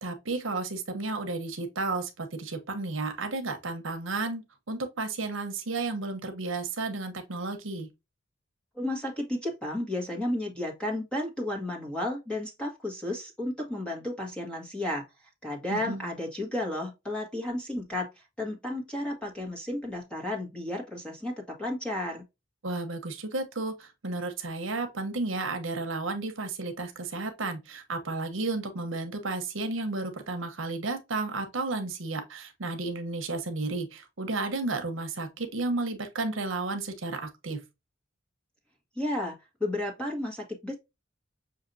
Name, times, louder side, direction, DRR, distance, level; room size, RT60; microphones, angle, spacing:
voice 1, 0.0-7.9 15.7-16.1 22.6-37.6, right 3 dB, 70° right, 1.0 m, -33 dB
voice 2, 8.7-15.0 15.4-22.2 38.9-40.7, left 1 dB, 5° left, 1.4 m, -33 dB
6.5 x 2.7 x 2.7 m
head